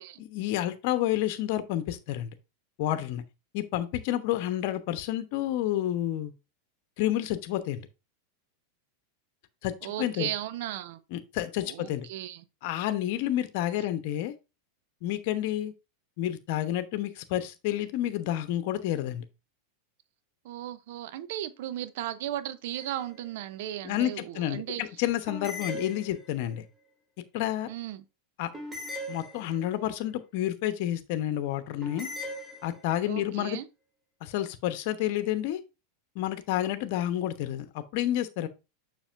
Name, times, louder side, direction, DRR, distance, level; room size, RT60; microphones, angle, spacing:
voice 1, 0.2-2.3 2.8-3.2 3.5-6.3 7.0-7.8 9.6-10.3 11.1-12.1 12.6-14.3 15.0-15.7 16.2-19.2 23.8-26.6 27.3-27.7 28.4-28.5 29.1-32.1 32.6-33.6 34.2-35.6 36.1-38.5, left 13 dB, 55° left, 0.9 m, -30 dB
voice 2, 9.8-11.0 11.6-12.4 20.4-24.8 27.7-28.0 33.1-33.6, right 12 dB, 60° right, 0.7 m, -36 dB
sound 1, 22.7-23.3 25.3-26.6 28.5-29.9 31.8-33.1, left 1 dB, 15° right, 2.9 m, -40 dB
7.2 x 6.1 x 2.6 m
hypercardioid pair, 95°, 0 cm